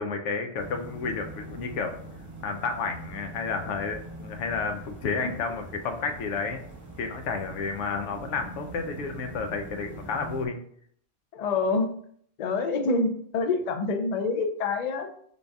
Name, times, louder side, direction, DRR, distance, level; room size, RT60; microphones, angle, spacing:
voice 1, 0.0-2.0 2.4-6.6 7.0-10.6, left 4 dB, 85° left, 6 dB, 1.0 m, -31 dB
Ambience City Quiet Night Air Tone, 0.6-10.5, right 2 dB, 15° right, 0.8 m, -43 dB
voice 2, 11.3-11.9 12.4-15.1, left 3 dB, 50° left, 6 dB, 0.5 m, -26 dB
3.9 x 3.5 x 3.5 m, 0.63 s
omnidirectional pair, 1.2 m